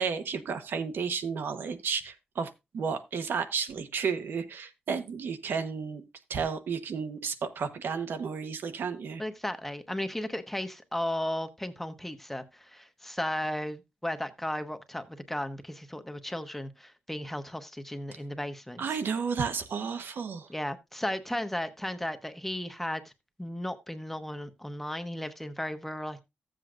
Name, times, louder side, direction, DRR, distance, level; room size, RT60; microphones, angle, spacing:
voice 1, 0.0-6.0 6.3-9.2 18.8-20.5, right 6 dB, 75° right, 1.0 m, -32 dB
voice 2, 9.2-18.8 20.5-23.1 23.4-26.2, left 1 dB, 5° left, 0.9 m, -35 dB
14.5 x 7.7 x 2.5 m
wide cardioid pair, 130°, 4 cm